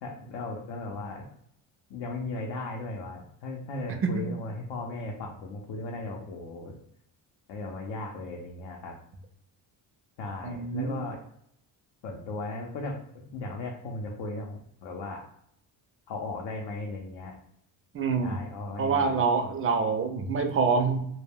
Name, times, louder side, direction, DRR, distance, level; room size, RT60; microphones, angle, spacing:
voice 1, 0.0-1.3 1.9-6.8 7.5-8.9 10.2-11.2 12.0-15.2 16.1-17.4 18.2-19.6, left 2 dB, 70° left, 0 dB, 0.7 m, -37 dB
voice 2, 10.4-11.0 17.9-18.4 18.8-21.1, right 5 dB, 30° right, 6 dB, 0.5 m, -26 dB
2.2 x 2.1 x 3.4 m, 0.71 s
cardioid pair, 105°, 44 cm